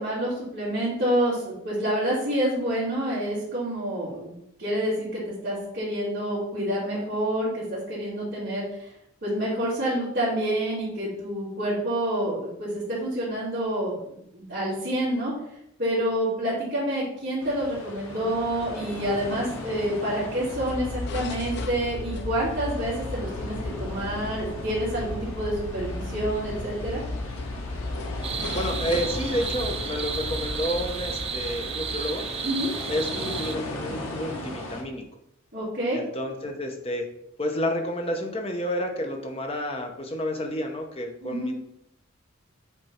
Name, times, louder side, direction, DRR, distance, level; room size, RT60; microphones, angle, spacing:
voice 1, 0.0-4.3 4.6-8.6 9.2-14.0 14.3-15.3 15.8-27.0 32.4-32.7 35.5-36.0 41.2-41.5, right 1 dB, 50° right, -12 dB, 2.6 m, -28 dB
sound 1, 17.4-34.8, left 1 dB, 85° left, 1.4 m, -38 dB
sound 2, 20.4-32.6, left 2 dB, 50° left, 0.5 m, -35 dB
sound 3, 28.2-33.5, right 7 dB, 30° right, 0.4 m, -33 dB
voice 2, 28.5-32.3 32.9-35.1 35.9-37.1 37.4-41.5, equal, 30° left, 3 dB, 0.8 m, -30 dB
7.8 x 3.4 x 4.4 m, 0.76 s
head